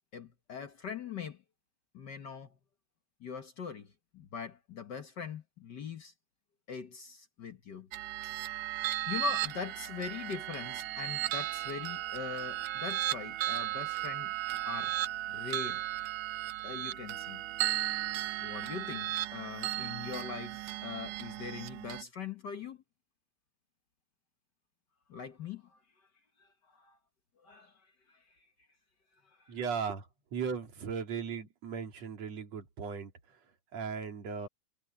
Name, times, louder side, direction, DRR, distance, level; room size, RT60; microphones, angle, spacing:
voice 1, 0.1-1.4 1.9-2.6 3.2-6.1 6.7-7.9 9.1-14.3 14.6-15.0 15.3-15.9 16.6-17.4 18.4-22.8 25.1-25.8 26.4-27.0 27.4-27.8 28.1-28.2 29.4-29.6, left 6 dB, 65° left, 1.0 m, -42 dB
sound 1, 7.9-22.0, right 15 dB, 80° right, 1.6 m, -35 dB
voice 2, 29.5-33.4 33.7-34.5, right 6 dB, 50° right, 4.2 m, -37 dB
omnidirectional pair, 3.9 m